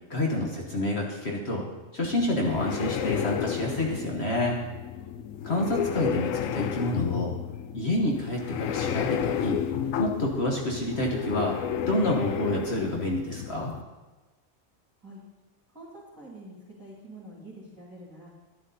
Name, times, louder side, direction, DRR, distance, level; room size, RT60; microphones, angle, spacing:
voice 1, 0.1-4.6 5.4-7.4 7.7-9.6 10.0-13.7, left 1 dB, 55° left, -1 dB, 1.6 m, -28 dB
sound 1, 2.0-13.8, left 9 dB, 85° left, 1.0 m, -32 dB
voice 2, 15.7-18.3, right 1 dB, 15° right, -7 dB, 2.9 m, -46 dB
11.5 x 11.5 x 4.2 m, 1.2 s
omnidirectional pair, 1.4 m